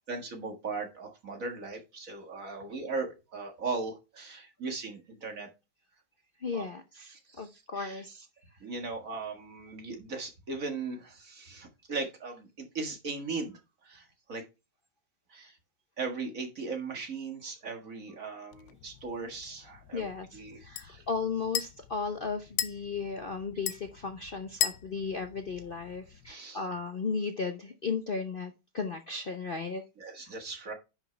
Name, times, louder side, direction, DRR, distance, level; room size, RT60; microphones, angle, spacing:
voice 1, 0.1-5.5 6.5-6.7 7.1-8.0 8.6-14.4 15.3-15.6 16.0-20.1 20.3-21.1 26.3-26.6 30.0-30.7, right 4 dB, 40° right, 2.0 m, -38 dB
voice 2, 6.4-8.3 19.9-29.8, left 5 dB, 85° left, 0.4 m, -35 dB
sound 1, 18.5-26.3, left 11 dB, 70° left, 1.4 m, -39 dB
10.5 x 5.9 x 3.3 m
omnidirectional pair, 2.2 m